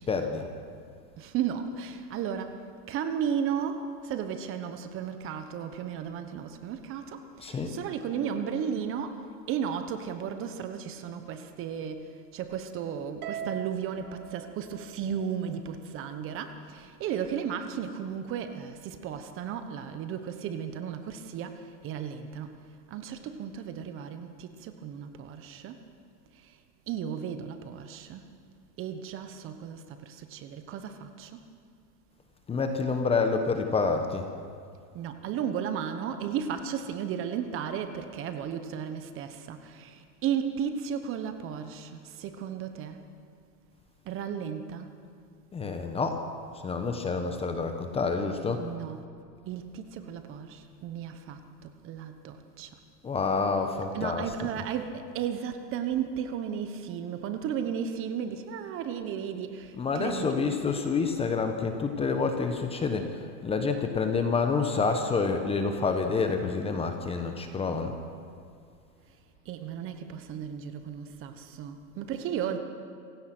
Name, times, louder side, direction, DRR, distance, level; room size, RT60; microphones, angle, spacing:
voice 1, 0.1-0.5 7.4-7.7 32.5-34.3 45.5-46.2 46.6-48.6 53.0-54.5 59.7-67.9, left 4 dB, 10° left, 6 dB, 1.1 m, -28 dB
voice 2, 1.2-22.6 22.9-25.8 26.3-26.6 26.9-28.3 28.8-31.5 34.9-43.0 44.0-44.9 48.6-49.0 49.5-52.8 53.9-60.3 69.4-72.6, right 8 dB, 25° right, 8 dB, 1.2 m, -34 dB
Harp, 13.2-15.7, right 7 dB, 60° right, 1.6 m, -41 dB
27.0 x 16.5 x 6.2 m, 2.3 s
hypercardioid pair, 145°, 49 cm